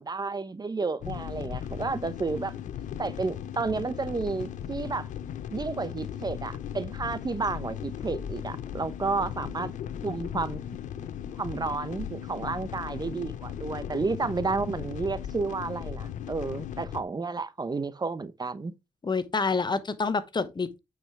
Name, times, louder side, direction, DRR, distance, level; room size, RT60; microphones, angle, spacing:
voice 1, 0.0-2.5 3.0-5.1 5.5-9.7 10.0-10.6 11.4-18.7, right 4 dB, 30° right, 0.9 m, -31 dB
sound 1, 1.0-17.0, left 9 dB, 75° left, 0.7 m, -37 dB
voice 2, 19.0-20.8, left 4 dB, 35° left, 1.0 m, -28 dB
8.9 x 5.0 x 3.3 m
supercardioid pair, 50°, 13 cm